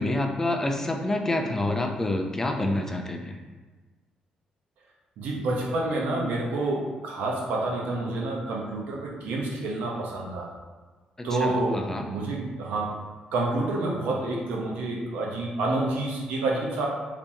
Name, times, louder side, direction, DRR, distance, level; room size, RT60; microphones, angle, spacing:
voice 1, 0.0-3.4 11.2-12.1, left 1 dB, 15° left, 3 dB, 0.4 m, -28 dB
voice 2, 5.2-10.5 11.2-11.8 12.1-12.9 13.3-16.9, right 2 dB, 90° right, -2 dB, 0.7 m, -28 dB
3.4 x 2.9 x 2.7 m, 1.3 s
cardioid pair, 95°, 3 cm